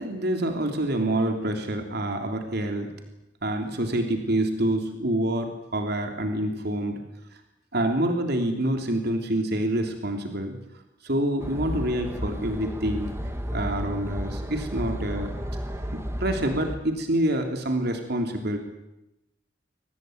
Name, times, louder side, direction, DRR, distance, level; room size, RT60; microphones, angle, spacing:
voice 1, 0.0-2.9 3.4-7.0 7.7-10.6 11.0-13.1 13.5-15.3 15.9-18.6, right 1 dB, 60° right, 4 dB, 3.3 m, -27 dB
sound 1, 11.4-16.8, equal, 15° right, 2.4 m, -33 dB
24.5 x 19.0 x 9.3 m, 0.90 s
head